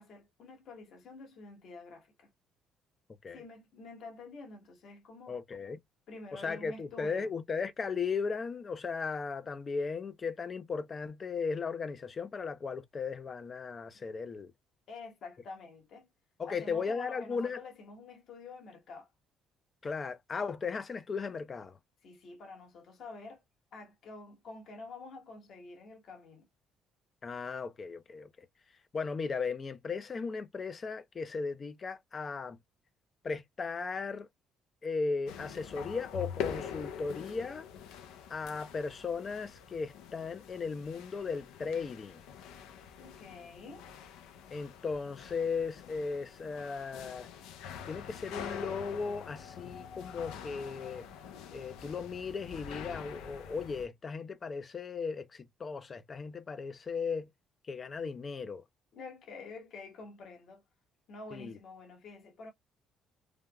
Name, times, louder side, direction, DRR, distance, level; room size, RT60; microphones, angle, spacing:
voice 1, 0.0-2.3 3.3-5.4 6.1-7.3 14.9-16.1 16.4-19.1 22.0-23.4 23.7-26.5 43.0-43.9 58.9-60.6 61.1-62.5, left 3 dB, 60° left, 1.2 m, -48 dB
voice 2, 5.3-5.8 6.3-14.5 16.4-17.6 19.8-21.8 27.2-28.3 28.9-32.6 33.2-34.3 34.8-37.7 38.3-42.2 44.5-47.3 47.8-51.1 51.5-57.3 57.6-58.6 61.3-61.6, left 5 dB, 35° left, 0.4 m, -36 dB
sound 1, 35.3-53.9, left 8 dB, 85° left, 0.5 m, -45 dB
3.2 x 2.1 x 2.3 m
cardioid pair, 95°, 0 cm